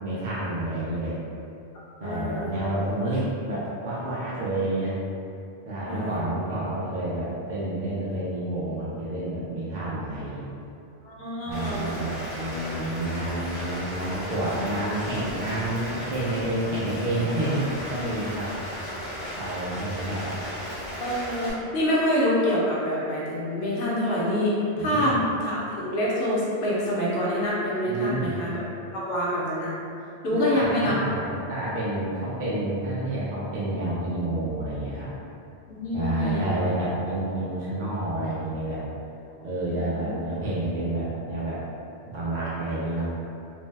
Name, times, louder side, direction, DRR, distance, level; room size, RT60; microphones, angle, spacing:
voice 1, 0.0-1.2 2.0-5.0 5.7-10.5 11.4-18.5 19.4-20.3 24.7-25.2 27.8-28.4 30.3-35.1 35.9-38.8 39.4-41.6 42.1-43.1, right 1 dB, 60° right, -8 dB, 0.5 m, -29 dB
voice 2, 2.0-2.5 5.8-6.2 11.0-11.9 21.0-28.6 28.9-29.7 30.2-31.0 35.7-36.6 39.6-40.1, left 1 dB, 70° left, -6 dB, 0.9 m, -26 dB
Rain, 11.5-21.5, equal, 40° left, 0.8 m, -35 dB
2.6 x 2.1 x 3.2 m, 2.6 s
omnidirectional pair, 1.1 m